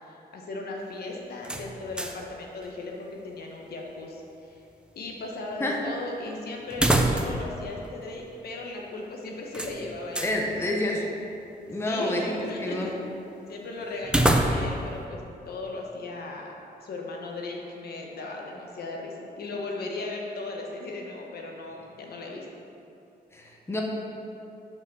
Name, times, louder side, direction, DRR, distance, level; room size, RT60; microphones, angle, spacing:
voice 1, 0.0-4.6 4.9-10.8 11.8-13.0 13.5-16.5 16.8-22.5, left 2 dB, 75° left, 0 dB, 1.1 m, -37 dB
sound 1, 1.4-2.3 2.6-2.7 6.7-7.5 7.8-7.9 9.5-10.4 14.0-14.9, right 1 dB, 5° right, 0.5 m, -25 dB
voice 2, 10.2-11.0 11.7-12.3 12.6-12.9 23.3-23.8, left 1 dB, 15° left, -1 dB, 0.8 m, -28 dB
5.9 x 5.5 x 6.3 m, 2.8 s
wide cardioid pair, 140°, 16 cm